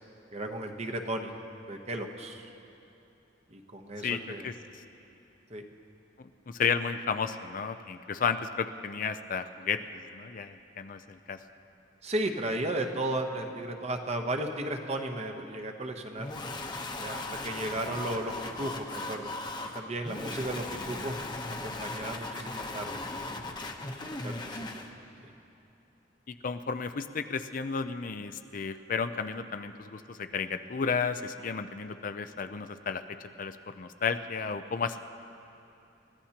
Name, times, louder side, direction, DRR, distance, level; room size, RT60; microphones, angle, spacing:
voice 1, 0.3-1.3 1.7-2.5 3.5-4.5 5.5-5.6 12.0-16.3 17.0-19.3 19.7-21.1 21.6-23.0 24.0-24.6 25.2-25.3, right 1 dB, 35° right, 4 dB, 1.0 m, -34 dB
voice 2, 4.0-4.5 6.2-11.4 26.3-33.0 33.4-35.0, left 5 dB, 45° left, 9 dB, 0.5 m, -33 dB
sound 1, 16.2-24.9, left 2 dB, 25° left, 0.9 m, -37 dB
29.5 x 14.5 x 2.9 m, 2.8 s
head